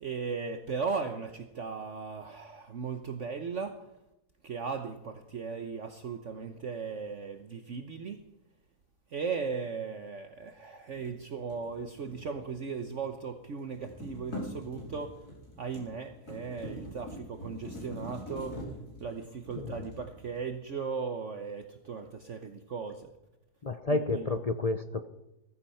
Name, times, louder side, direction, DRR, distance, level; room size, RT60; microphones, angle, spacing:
voice 1, 0.0-3.8 4.4-8.2 9.1-15.2 15.6-18.6 19.0-23.1 23.9-24.2, right 5 dB, 50° right, 6 dB, 1.3 m, -37 dB
sound 1, 10.9-13.1 13.4-20.7, left 1 dB, 65° left, 5.4 m, -44 dB
voice 2, 19.6-19.9 23.6-25.1, left 2 dB, 50° left, 9 dB, 0.4 m, -30 dB
15.5 x 14.5 x 5.7 m, 0.90 s
omnidirectional pair, 1.7 m